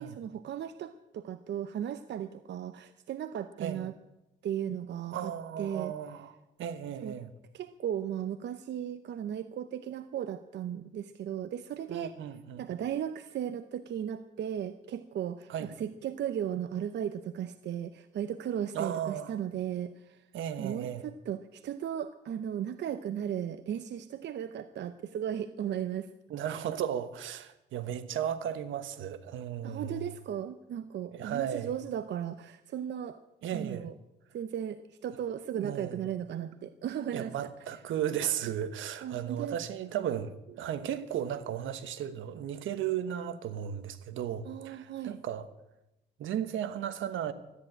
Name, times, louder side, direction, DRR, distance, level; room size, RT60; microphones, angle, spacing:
voice 1, 0.0-3.9 4.4-5.9 7.0-7.1 7.5-12.1 12.6-20.2 20.6-26.1 29.6-33.2 33.5-33.9 34.3-37.5 39.0-39.6 40.0-40.1 44.4-45.2, right 9 dB, 60° right, 0.7 m, -36 dB
voice 2, 5.1-6.3 6.6-7.3 11.9-12.6 15.5-15.7 18.7-19.3 20.3-21.0 26.3-30.0 31.0-31.7 33.4-33.8 35.5-36.1 37.1-45.5 46.2-47.3, right 9 dB, 80° right, 1.2 m, -35 dB
13.5 x 10.0 x 8.9 m
cardioid pair, 90°, 20 cm